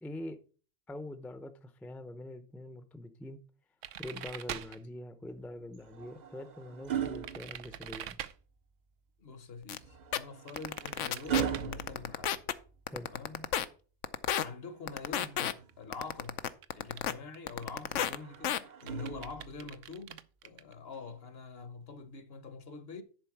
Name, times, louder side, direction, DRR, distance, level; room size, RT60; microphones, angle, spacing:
voice 1, 0.0-0.4 0.9-3.4 4.0-8.2 12.9-13.1, left 1 dB, ahead, 0.5 m, -44 dB
sound 1, 3.8-4.8 7.0-8.3 10.5-11.7 15.7-15.8 16.1-16.3 16.6-17.0 17.3-20.7, right 11 dB, 80° right, 1.0 m, -44 dB
sound 2, 5.7-8.2 9.8-13.0 14.7-15.9 17.9-19.7 20.9-21.2, right 8 dB, 45° right, 0.7 m, -39 dB
voice 2, 9.2-12.4 13.0-13.5 14.4-16.4 16.7-23.0, left 4 dB, 55° left, 1.1 m, -45 dB
sound 3, 9.7-9.8 10.1-10.2 10.6-11.4 11.7-12.5 12.9-13.7 14.0-14.4 14.9-15.5 15.9-17.1 17.5-18.2 18.4-18.6, left 11 dB, 80° left, 1.0 m, -31 dB
10.5 x 4.2 x 5.9 m
omnidirectional pair, 1.3 m